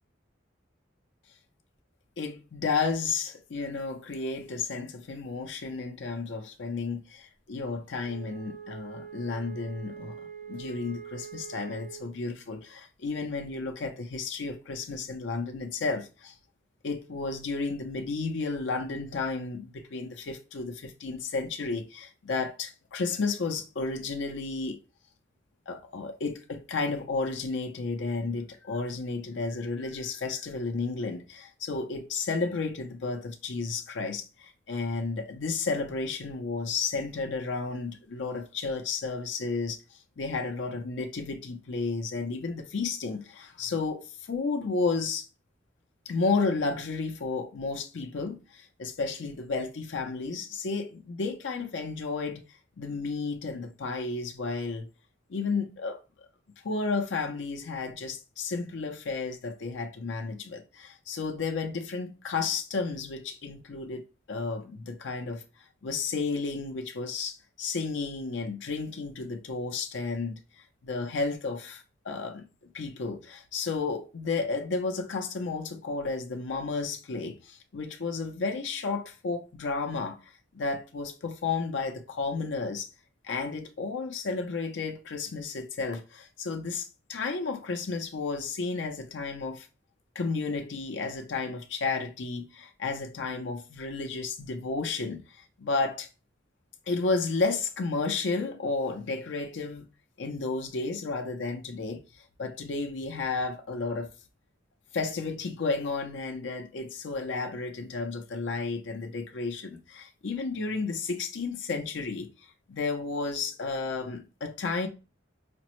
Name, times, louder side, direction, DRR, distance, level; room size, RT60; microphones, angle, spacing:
voice 1, 2.2-16.3 16.8-24.8 25.7-45.3 46.1-52.4 52.8-54.9 55.3-56.0 56.6-65.4 65.8-72.5 72.7-82.9 83.2-89.7 90.2-96.1 96.9-99.9 100.2-104.1 104.9-112.3 112.7-114.9, left 4 dB, 70° left, 0.5 m, -32 dB
Wind instrument woodwind instrument, 8.0-12.2, right 8 dB, 35° right, 0.7 m, -44 dB
5.0 x 2.0 x 2.9 m
head